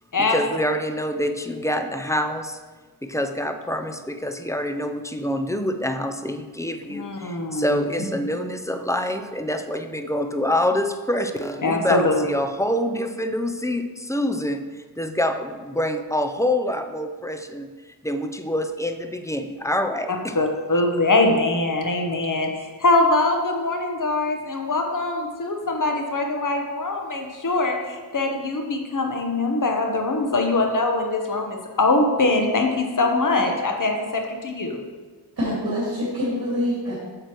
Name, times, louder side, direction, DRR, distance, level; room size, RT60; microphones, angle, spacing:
voice 1, 0.3-2.6 3.0-17.7 18.0-20.4, left 1 dB, 10° left, 6 dB, 0.5 m, -26 dB
voice 2, 6.9-7.9 11.6-12.3 20.3-34.8, left 2 dB, 55° left, 3 dB, 1.1 m, -22 dB
voice 3, 35.4-37.0, left 1 dB, 70° right, -8 dB, 2.5 m, -25 dB
8.7 x 6.6 x 3.1 m, 1.4 s
wide cardioid pair, 70°, 37 cm